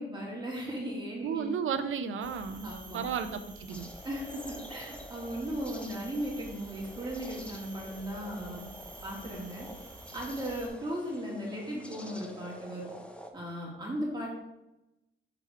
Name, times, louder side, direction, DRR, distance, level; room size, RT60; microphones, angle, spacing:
voice 1, 0.0-1.5 2.6-3.3 4.0-8.7 9.0-9.7 10.1-12.9 13.3-14.4, equal, 20° right, -4 dB, 1.7 m, -37 dB
voice 2, 1.2-3.9, right 7 dB, 75° right, 10 dB, 0.5 m, -33 dB
sound 1, 2.2-10.7, right 2 dB, 40° right, 1.2 m, -49 dB
sound 2, 3.7-13.3, equal, 5° left, 0.6 m, -48 dB
5.9 x 3.4 x 4.6 m, 0.95 s
cardioid pair, 110°, 21 cm